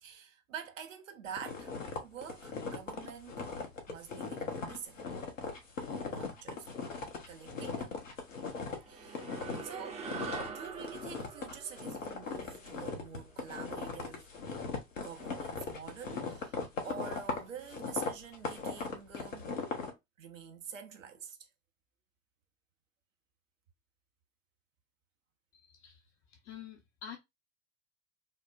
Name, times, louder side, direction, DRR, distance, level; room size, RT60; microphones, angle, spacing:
voice 1, 0.0-3.4 3.9-5.0 6.0-6.7 7.3-7.9 8.9-9.3 9.6-10.1 10.5-14.3 15.0-19.5 20.2-21.5, right 7 dB, 80° right, 0.7 m, -47 dB
sound 1, 1.4-8.8 9.1-9.7 10.0-19.9, left 4 dB, 80° left, 0.9 m, -39 dB
sound 2, 8.8-13.5, right 5 dB, 15° right, 0.5 m, -44 dB
voice 2, 25.5-27.2, left 8 dB, 35° left, 0.6 m, -49 dB
3.5 x 2.1 x 2.3 m
figure-of-eight pair, 70°, 38 cm